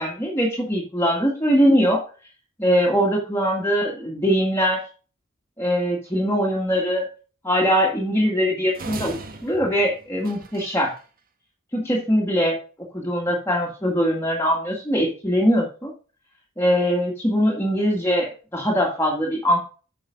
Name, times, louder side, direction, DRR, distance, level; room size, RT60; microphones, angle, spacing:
voice 1, 0.0-2.0 2.6-4.8 5.6-7.1 7.4-9.1 9.4-10.9 11.7-12.6 12.9-15.9 16.6-19.6, equal, 10° left, -2 dB, 1.8 m, -21 dB
sound 1, 8.7-11.0, right 3 dB, 45° right, 1.4 m, -38 dB
9.1 x 5.9 x 5.0 m, 0.37 s
head